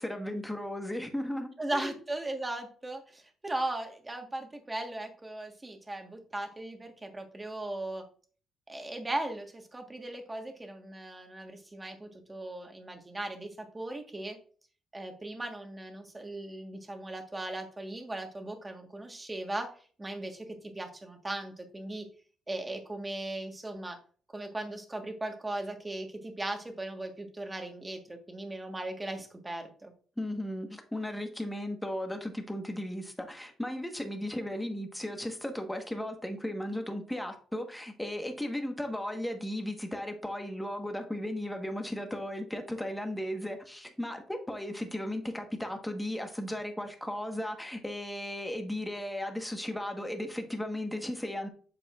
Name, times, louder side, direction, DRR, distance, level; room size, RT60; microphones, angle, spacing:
voice 1, 0.0-1.9 30.2-51.5, left 1 dB, 5° left, 1.4 m, -36 dB
voice 2, 1.6-8.0 8.7-14.4 14.9-19.7 20.0-22.0 22.5-24.0 24.3-29.9, right 2 dB, 15° right, 1.5 m, -38 dB
8.3 x 6.8 x 2.5 m
cardioid pair, 115°, 0 cm